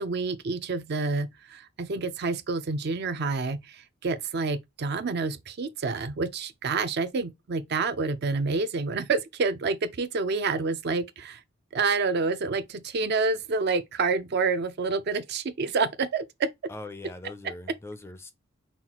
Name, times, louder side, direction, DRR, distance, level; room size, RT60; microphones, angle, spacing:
voice 1, 0.0-11.4 11.7-16.5, right 4 dB, 50° right, 0.4 m, -28 dB
voice 2, 16.7-18.3, left 2 dB, 10° left, 0.3 m, -41 dB
5.6 x 2.3 x 2.9 m
head